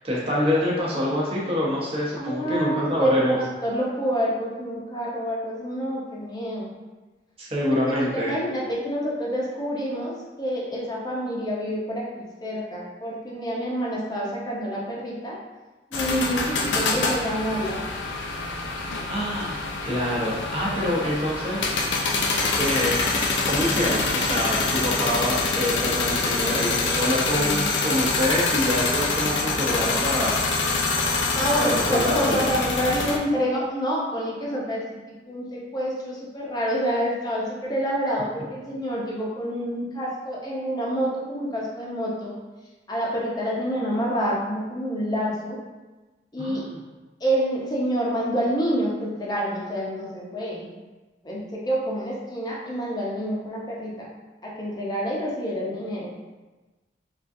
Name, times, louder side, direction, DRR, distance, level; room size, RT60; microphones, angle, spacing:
voice 1, 0.0-3.4 7.4-8.3 19.0-21.7 22.6-23.0 23.4-30.4 31.6-32.5 46.4-46.8, left 1 dB, 35° right, -5 dB, 0.8 m, -26 dB
voice 2, 2.2-6.7 7.6-15.4 15.9-17.8 27.3-27.5 31.3-34.8 35.3-42.3 42.9-45.6 46.3-46.6 47.2-50.7 51.2-54.1 54.4-56.1, equal, 25° left, -4 dB, 0.6 m, -27 dB
sound 1, 15.9-33.2, left 3 dB, 85° left, 0.4 m, -25 dB
3.7 x 2.4 x 2.6 m, 1.2 s
head